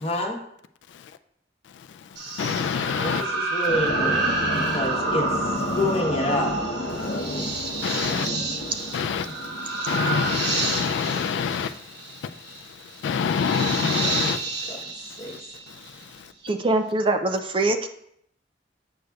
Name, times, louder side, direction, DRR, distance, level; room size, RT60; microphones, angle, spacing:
voice 1, 0.0-0.4 3.0-5.3 5.7-6.5 14.7-14.8 15.2-15.3, left 1 dB, 35° left, 1.0 m, -27 dB
sound 1, 2.2-16.0, right 3 dB, 65° right, 1.1 m, -29 dB
voice 2, 2.4-3.3 4.6-4.7 5.7-5.8 6.9-8.3 8.6-14.8 15.2-15.4 15.7-16.3, left 6 dB, 85° left, 0.3 m, -28 dB
sound 2, 3.7-10.1, left 1 dB, 65° left, 0.8 m, -31 dB
voice 3, 16.4-17.9, right 2 dB, 30° right, 0.4 m, -23 dB
7.8 x 6.3 x 2.3 m
head